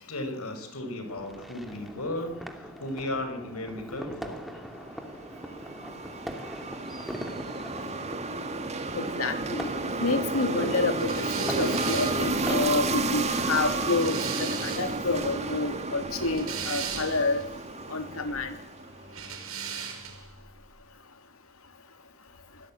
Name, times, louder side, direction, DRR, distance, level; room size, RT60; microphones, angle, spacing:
voice 1, 0.1-4.4, left 1 dB, 85° left, 8 dB, 5.4 m, -35 dB
sound 1, 1.1-12.7, equal, ahead, 2.6 m, -41 dB
sound 2, 4.9-19.2, right 2 dB, 30° right, 2.1 m, -32 dB
voice 2, 8.9-17.4 17.9-18.5, left 3 dB, 70° left, 8 dB, 3.2 m, -29 dB
sound 3, 11.0-15.1 16.0-17.4 19.1-20.3, right 7 dB, 70° right, 6.1 m, -37 dB
25.5 x 17.0 x 8.7 m, 0.76 s
head